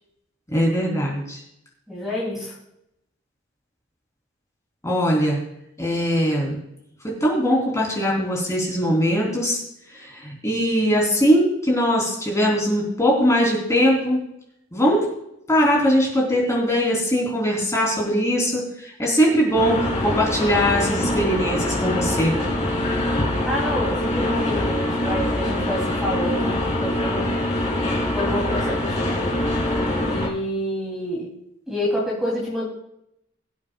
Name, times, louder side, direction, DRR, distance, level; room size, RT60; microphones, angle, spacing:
voice 1, 0.5-1.4 4.8-5.4 5.8-6.6 7.2-9.6 10.0-14.2 14.7-15.1 15.5-22.3, equal, 15° left, -3 dB, 3.8 m, -21 dB
voice 2, 1.9-2.5 23.4-27.3 28.1-29.5 30.0-31.3 31.7-32.6, equal, ahead, -6 dB, 3.3 m, -28 dB
sound 1, 19.5-30.3, left 1 dB, 35° left, 3.1 m, -24 dB
22.0 x 8.4 x 2.5 m, 0.81 s
head